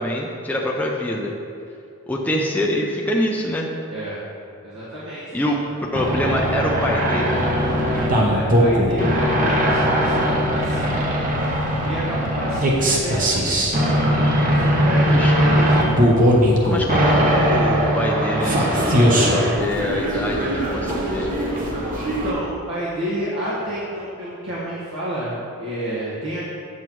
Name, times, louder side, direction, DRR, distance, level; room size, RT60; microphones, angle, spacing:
voice 1, 0.0-1.3 2.1-3.7 5.3-5.6 5.9-7.4 15.1-15.3 16.6-21.4, equal, 5° left, -2 dB, 0.4 m, -25 dB
voice 2, 3.9-4.2 4.6-5.5 7.7-11.0 11.8-15.8 21.9-26.4, equal, 75° right, -9 dB, 1.5 m, -30 dB
sound 1, 5.9-22.3, equal, 35° right, 0.8 m, -19 dB
sound 2, 7.4-17.8, left 1 dB, 80° left, 0.7 m, -35 dB
7.8 x 7.0 x 3.1 m, 2.6 s
head